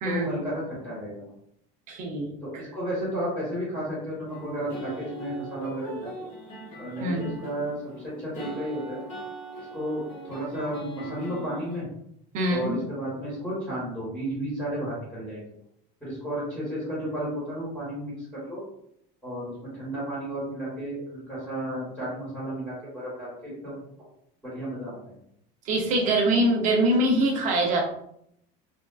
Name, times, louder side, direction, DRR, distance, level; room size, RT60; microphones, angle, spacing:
voice 1, 0.0-1.2 2.4-6.1 6.8-9.0 9.7-11.9 12.5-15.4 16.0-18.6 19.2-23.8 24.4-24.9, right 1 dB, ahead, -10 dB, 1.3 m, -33 dB
voice 2, 1.9-2.3 7.0-7.3 12.3-12.8 25.6-27.8, right 1 dB, 40° right, 0 dB, 0.6 m, -23 dB
sound 1, 4.3-11.8, right 2 dB, 35° left, 1.0 m, -41 dB
3.5 x 2.4 x 2.3 m, 0.72 s
cardioid pair, 175°, 21 cm